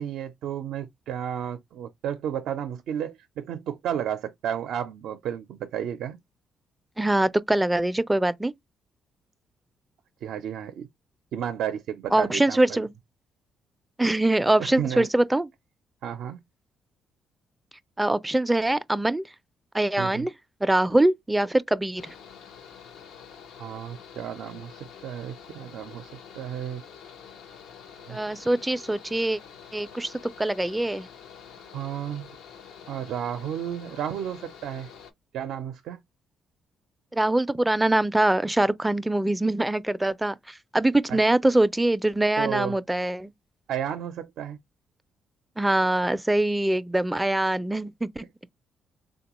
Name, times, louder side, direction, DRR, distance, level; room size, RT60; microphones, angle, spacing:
voice 1, 0.0-6.2 10.2-10.9 11.3-12.9 14.6-15.1 16.0-16.4 20.0-20.3 23.6-26.8 28.1-28.2 31.7-32.3 32.9-34.9 35.3-36.0 41.1-41.2 42.4-42.8 43.7-44.6, right 9 dB, 80° right, 0.4 m, -32 dB
voice 2, 7.0-8.5 12.1-12.9 14.0-15.5 18.0-19.3 19.7-20.3 20.6-22.1 28.1-29.4 29.7-31.1 37.1-43.3 45.6-48.2, right 1 dB, 10° right, 0.3 m, -23 dB
Mechanical fan, 22.0-35.1, left 7 dB, 85° left, 0.6 m, -47 dB
3.6 x 2.2 x 2.9 m
cardioid pair, 90°, 0 cm